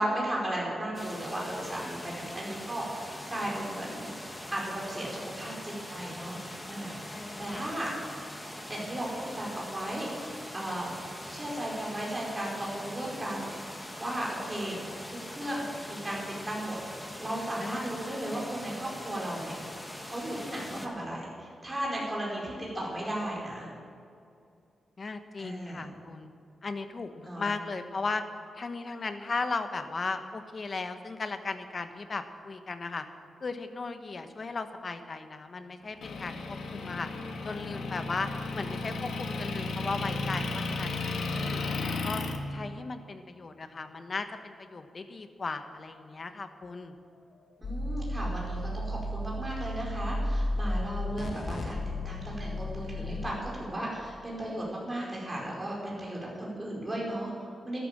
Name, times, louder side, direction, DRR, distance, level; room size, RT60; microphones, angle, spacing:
voice 1, 0.0-4.1 4.5-6.4 6.7-7.9 8.7-10.9 11.3-13.5 14.0-14.8 15.1-16.8 17.2-19.5 20.1-23.7 25.4-25.8 27.2-27.5 47.6-51.8 52.0-57.8, right 1 dB, 15° right, -4 dB, 4.8 m, -35 dB
sound 1, 0.9-20.9, left 1 dB, 10° left, 1.6 m, -42 dB
voice 2, 7.1-7.7 17.6-18.0 22.0-22.4 25.0-26.3 26.6-28.2 28.5-33.0 33.4-37.1 37.4-41.0 41.3-42.2 42.5-47.0, left 3 dB, 40° left, 8 dB, 1.1 m, -36 dB
Motor vehicle (road) / Engine, 36.0-42.4, left 3 dB, 85° left, 1.6 m, -34 dB
sound 2, 47.6-53.3, left 1 dB, 60° left, 1.8 m, -33 dB
13.0 x 12.0 x 7.5 m, 2.5 s
wide cardioid pair, 130°, 0 cm